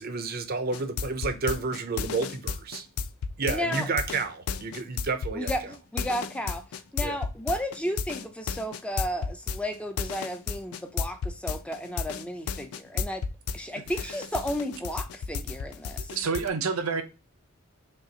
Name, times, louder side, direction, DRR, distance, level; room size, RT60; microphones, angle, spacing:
voice 1, 0.0-2.9 3.4-5.5 7.0-7.2, right 4 dB, 45° right, 0.6 m, -30 dB
sound 1, 0.7-13.6 13.9-16.5, left 6 dB, 85° left, 0.4 m, -32 dB
voice 2, 3.5-3.9 5.3-6.6 6.9-13.2 13.5-16.1, equal, 5° left, 0.5 m, -33 dB
voice 3, 16.1-17.0, right 5 dB, 85° right, 0.7 m, -28 dB
5.2 x 2.4 x 2.8 m
head